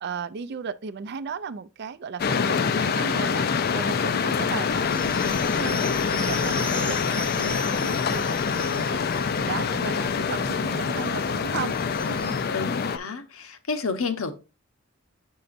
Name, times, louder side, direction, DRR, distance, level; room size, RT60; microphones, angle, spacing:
voice 1, 0.0-3.5 3.7-9.0 9.4-11.7 12.1-12.4, right 5 dB, 50° right, 0.4 m, -35 dB
sound 1, 2.2-13.0, left 6 dB, 45° left, 0.4 m, -25 dB
sound 2, 4.7-12.5, left 1 dB, 5° left, 0.7 m, -39 dB
voice 2, 12.5-14.3, left 4 dB, 75° left, 0.9 m, -30 dB
7.8 x 5.5 x 2.5 m
head